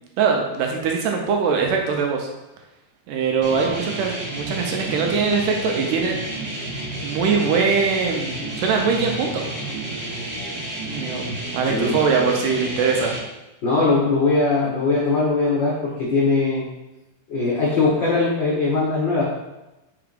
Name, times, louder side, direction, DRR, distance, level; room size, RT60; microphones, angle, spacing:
voice 1, 0.2-2.3 3.1-6.2 7.0-9.5 10.9-13.1, right 5 dB, 80° right, 1 dB, 2.2 m, -22 dB
sound 1, 3.4-13.2, right 1 dB, 60° right, 1.0 m, -31 dB
voice 2, 13.6-16.6 17.3-19.3, left 3 dB, 70° left, -6 dB, 1.1 m, -20 dB
4.8 x 4.4 x 5.2 m, 0.98 s
omnidirectional pair, 4.0 m